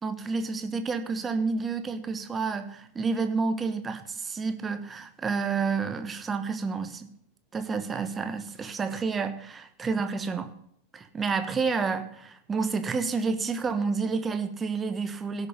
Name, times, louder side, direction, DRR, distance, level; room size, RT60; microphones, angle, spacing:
voice 1, 0.0-7.1 7.5-10.5 10.9-15.5, right 4 dB, 20° right, 9 dB, 1.2 m, -29 dB
16.5 x 6.5 x 5.2 m, 0.68 s
figure-of-eight pair, 90°, 0 cm